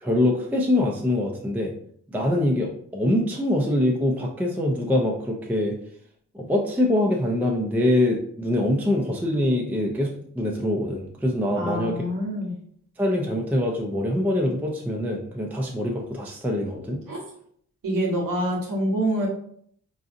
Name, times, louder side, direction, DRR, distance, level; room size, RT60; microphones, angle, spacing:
voice 1, 0.0-1.7 2.1-5.8 6.3-12.0 13.0-17.0, left 1 dB, 5° right, -1 dB, 0.5 m, -24 dB
voice 2, 11.5-12.5 17.1-17.2 17.8-19.3, equal, 85° right, -1 dB, 1.1 m, -26 dB
3.9 x 2.5 x 2.5 m, 0.64 s
cardioid pair, 70°, 33 cm